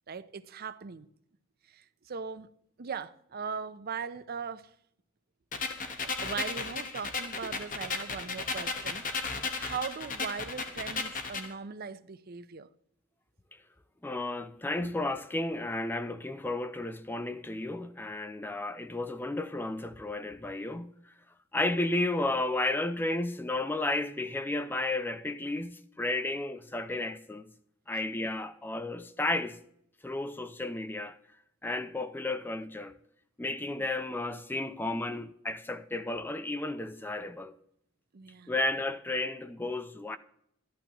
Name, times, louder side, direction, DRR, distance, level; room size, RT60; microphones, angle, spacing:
voice 1, 0.1-1.1 1.7-2.5 2.8-4.7 6.0-12.7 14.8-15.0 33.8-33.9 38.1-38.5, right 6 dB, 45° right, 0.5 m, -39 dB
sound 1, 5.5-11.5, left 4 dB, 40° left, 1.1 m, -35 dB
voice 2, 14.0-21.1 21.5-27.5 27.9-29.6 30.0-31.2 31.6-32.9 33.4-37.5 38.5-40.2, left 2 dB, 10° left, 0.4 m, -33 dB
13.0 x 11.5 x 3.0 m
head